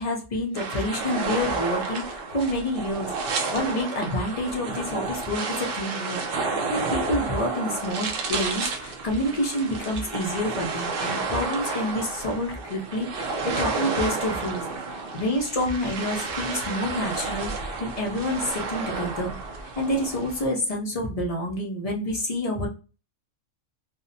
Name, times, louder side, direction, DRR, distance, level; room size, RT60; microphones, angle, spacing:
voice 1, 0.0-3.1 3.5-6.2 6.7-14.6 15.1-19.3 19.8-22.7, left 1 dB, 55° left, -1 dB, 0.4 m, -28 dB
sound 1, 0.5-20.4, right 4 dB, 65° right, 0.5 m, -31 dB
2.7 x 2.0 x 2.6 m, 0.33 s
omnidirectional pair, 1.4 m